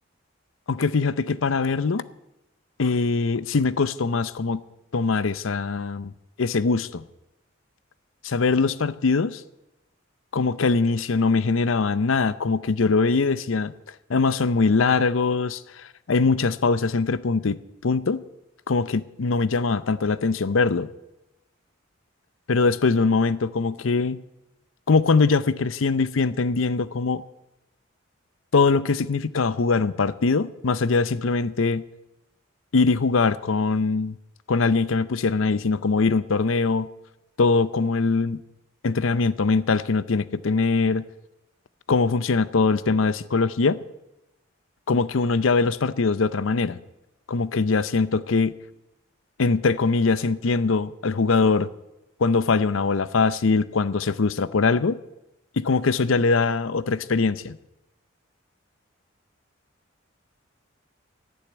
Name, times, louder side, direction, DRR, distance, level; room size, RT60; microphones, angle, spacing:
voice 1, 0.7-2.0 2.8-4.6 4.9-6.1 6.4-7.0 8.2-9.4 10.3-13.7 14.1-18.2 18.7-20.9 22.5-24.2 24.9-27.2 28.5-31.8 32.7-34.2 34.5-36.9 37.4-38.4 38.8-41.0 41.9-43.8 44.9-46.8 47.3-48.5 49.4-51.7 52.2-55.0 55.6-57.6, left 4 dB, 75° left, 0.6 m, -22 dB
11.5 x 10.5 x 9.2 m
head